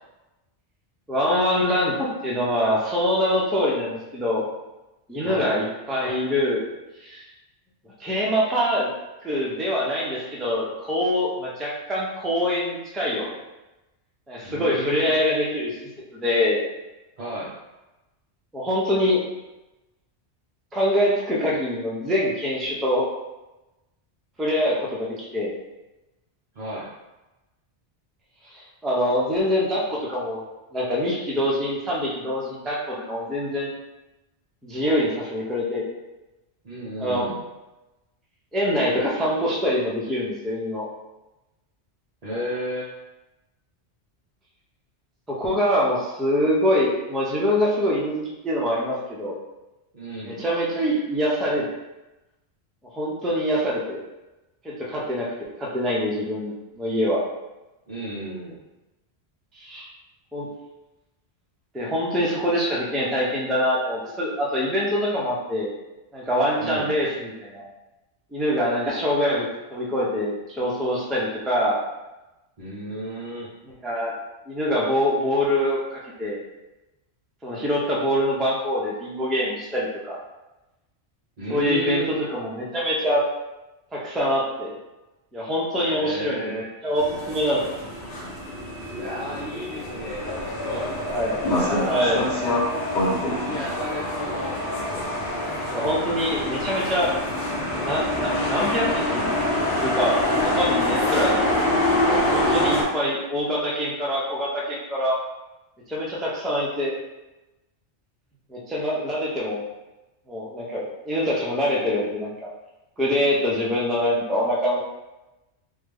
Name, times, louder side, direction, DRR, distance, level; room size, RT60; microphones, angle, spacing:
voice 1, 1.1-4.5 5.1-6.6 7.0-7.2 8.0-8.9 9.2-13.3 14.3-15.7 16.1-16.6 18.5-19.2 20.7-23.0 24.4-25.5 28.5-30.4 30.7-33.7 34.6-35.9 37.0-37.3 38.5-40.9 45.3-49.4 50.2-51.7 52.9-54.0 54.6-57.2 59.5-59.9 60.3-60.5 61.7-65.7 66.1-67.6 68.3-71.8 73.8-74.2 74.5-76.4 77.4-80.2 81.5-83.2 83.9-84.8 85.3-87.8 91.1-91.4 91.9-92.4 95.7-97.1 97.7-99.3 99.7-101.4 102.3-105.2 105.9-107.0 108.5-109.6 110.3-112.5 113.0-114.8, equal, ahead, -5 dB, 0.4 m, -24 dB
voice 2, 14.4-15.1 17.2-17.5 26.5-26.9 36.6-37.4 42.2-42.9 49.9-50.4 57.9-58.6 66.6-66.9 72.6-73.5 81.4-82.1 85.9-86.6 88.9-92.3 93.3-94.6, right 1 dB, 40° right, -8 dB, 0.8 m, -33 dB
sound 1, 87.0-102.8, left 1 dB, 55° left, 0.9 m, -25 dB
3.6 x 2.2 x 3.4 m, 1.0 s
omnidirectional pair, 1.2 m